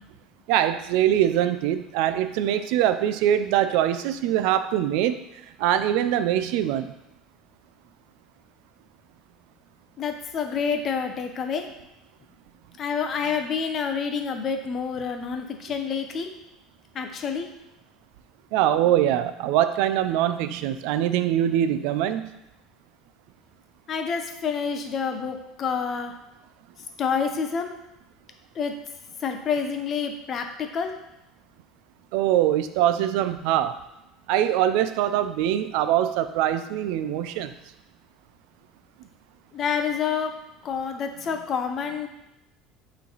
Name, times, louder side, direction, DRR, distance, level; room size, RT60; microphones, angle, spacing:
voice 1, 0.5-5.3 5.6-6.9 18.5-22.3 32.1-33.7 34.3-37.5, right 11 dB, 65° right, 11 dB, 0.4 m, -23 dB
voice 2, 10.0-11.6 12.8-16.3 16.9-17.5 23.9-26.1 27.0-27.7 28.6-28.7 29.2-30.9 39.5-40.3 40.6-42.1, left 6 dB, 30° left, 6 dB, 0.6 m, -28 dB
8.2 x 3.2 x 4.0 m, 0.91 s
cardioid pair, 170°, 0 cm